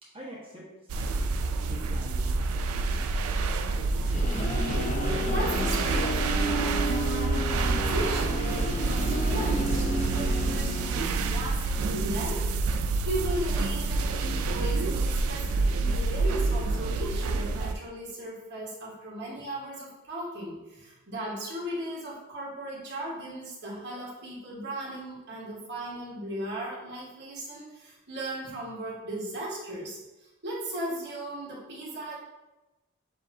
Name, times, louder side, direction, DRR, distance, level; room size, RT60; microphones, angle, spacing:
voice 1, 0.0-1.4 1.7-3.5 4.0-4.3, equal, 25° right, -6 dB, 1.1 m, -46 dB
sound 1, 0.9-17.7, right 3 dB, 85° right, 0.3 m, -28 dB
sound 2, 3.8-11.5, equal, 35° left, 0.5 m, -32 dB
voice 2, 5.2-32.1, right 1 dB, 55° right, -5 dB, 1.5 m, -37 dB
7.2 x 2.7 x 2.6 m, 1.1 s
head